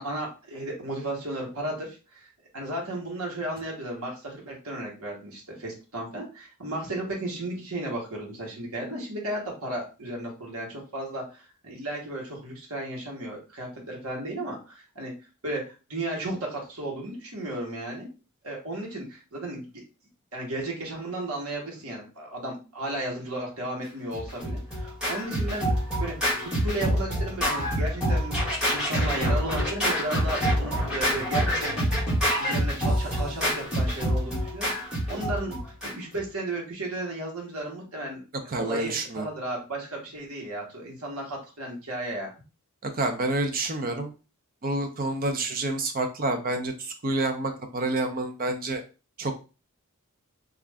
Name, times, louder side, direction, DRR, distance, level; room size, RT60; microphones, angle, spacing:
voice 1, 0.0-15.1 15.4-18.1 18.4-19.8 20.3-25.7 26.0-32.0 32.4-38.2 38.6-42.3, right 1 dB, 75° right, -2 dB, 1.2 m, -34 dB
Scratching (performance technique), 24.1-36.2, equal, 5° right, 1.3 m, -26 dB
voice 2, 38.5-39.3 42.8-44.1 44.6-48.8 49.2-49.3, right 2 dB, 40° right, 5 dB, 0.6 m, -28 dB
2.5 x 2.4 x 3.3 m, 0.31 s
head